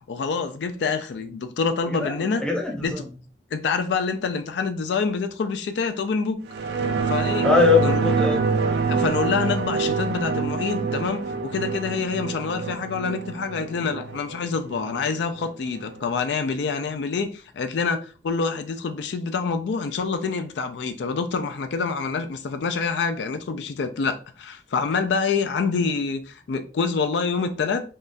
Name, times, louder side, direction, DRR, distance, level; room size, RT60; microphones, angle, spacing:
voice 1, 0.1-2.4 2.8-2.9 3.5-6.4 7.1-7.5 7.8-8.0 8.9-27.8, left 5 dB, 80° left, 0.4 m, -26 dB
voice 2, 1.9-3.0 7.4-8.4, left 4 dB, 5° left, 0.5 m, -21 dB
sound 1, 6.5-15.5 15.8-15.9, right 5 dB, 70° right, 0.3 m, -26 dB
3.5 x 2.2 x 2.5 m
head